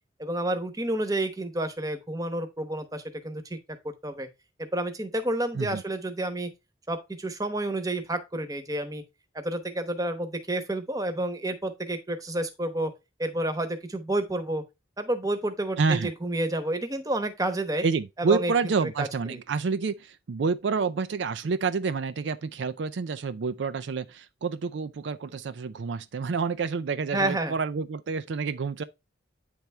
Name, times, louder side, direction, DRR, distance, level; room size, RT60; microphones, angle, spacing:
voice 1, 0.2-3.6 4.0-4.3 4.6-6.5 6.9-9.0 9.3-12.9 13.2-14.6 15.0-17.8 18.2-18.5 19.0-19.4 27.1-27.5, right 1 dB, 20° right, 1.0 m, -30 dB
voice 2, 15.8-16.1 17.8-28.8, right 5 dB, 70° right, 0.4 m, -28 dB
9.2 x 3.5 x 4.2 m
head